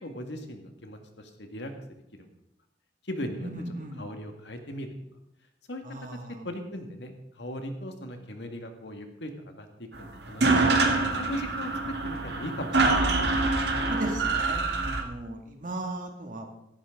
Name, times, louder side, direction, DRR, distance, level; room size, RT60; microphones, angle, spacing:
voice 1, 0.0-1.7 2.2-2.3 3.0-3.5 4.0-4.9 5.7-5.8 6.4-10.7 11.2-13.4, equal, 70° left, 5 dB, 1.9 m, -38 dB
voice 2, 3.4-4.1 5.8-6.4 13.7-16.5, right 1 dB, 45° right, 3 dB, 2.2 m, -37 dB
sound 1, 9.9-10.0 10.2-15.0, right 3 dB, 65° right, 1.8 m, -25 dB
16.5 x 13.5 x 3.8 m, 0.84 s
head